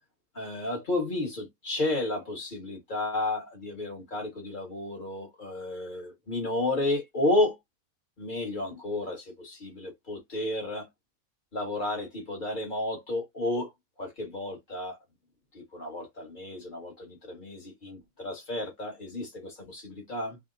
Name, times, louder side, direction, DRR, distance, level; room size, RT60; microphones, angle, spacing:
voice 1, 0.3-7.6 8.2-10.9 11.5-13.7 14.0-15.0 15.5-20.4, left 2 dB, 40° left, 1.1 m, -32 dB
2.9 x 2.1 x 3.7 m
omnidirectional pair, 1.5 m